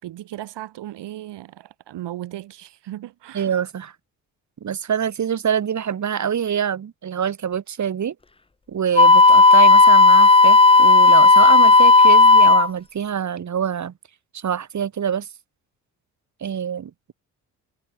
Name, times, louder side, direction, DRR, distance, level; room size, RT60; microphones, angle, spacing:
voice 1, 0.0-3.5, right 13 dB, 70° right, 4.8 m, -36 dB
voice 2, 3.3-3.9 4.6-8.1 8.7-13.9 14.3-15.3 16.4-17.1, right 8 dB, 40° right, 1.4 m, -25 dB
Wind instrument woodwind instrument, 9.0-12.7, left 3 dB, 15° left, 0.8 m, -11 dB
hypercardioid pair, 55°, 43 cm